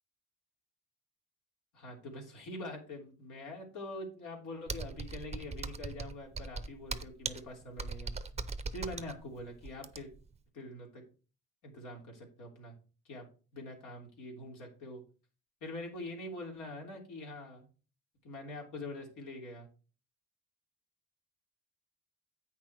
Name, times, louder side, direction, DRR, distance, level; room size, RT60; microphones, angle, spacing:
voice 1, 1.7-8.1 8.7-10.1 10.5-11.0 11.6-12.7 13.1-13.2 13.5-15.0 15.6-17.7 18.2-19.7, left 1 dB, 80° left, -1 dB, 3.2 m, -44 dB
Computer keyboard, 4.7-10.3, right 4 dB, 20° right, 0.7 m, -40 dB
8.6 x 6.0 x 4.6 m, 0.36 s
cardioid pair, 90°, 30 cm